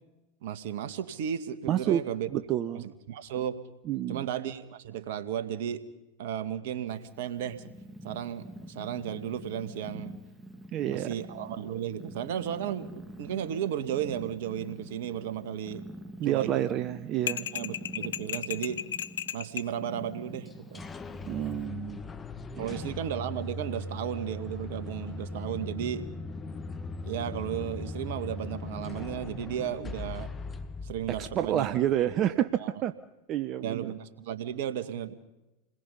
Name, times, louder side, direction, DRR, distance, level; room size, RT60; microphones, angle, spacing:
voice 1, 0.4-2.3 3.1-3.6 4.1-5.8 6.2-7.6 8.0-10.1 10.9-15.8 16.2-16.6 17.2-18.8 19.3-20.9 22.6-26.0 27.0-30.3 30.8-31.7 32.6-32.7 33.6-35.1, right 9 dB, 65° right, 12 dB, 1.7 m, -34 dB
voice 2, 1.7-2.1 2.3-2.9 3.8-4.3 10.7-11.1 16.2-17.5 21.3-22.0 22.6-22.8 31.1-32.9 33.3-33.9, right 11 dB, 40° right, 10 dB, 0.9 m, -29 dB
Purr, 6.9-21.7, equal, 5° right, 2.7 m, -46 dB
sound 1, 17.3-19.7, left 9 dB, 80° left, 0.7 m, -34 dB
sound 2, 20.5-32.1, left 3 dB, 20° left, 1.6 m, -39 dB
28.5 x 21.0 x 5.5 m, 1.0 s
hypercardioid pair, 95°, 0 cm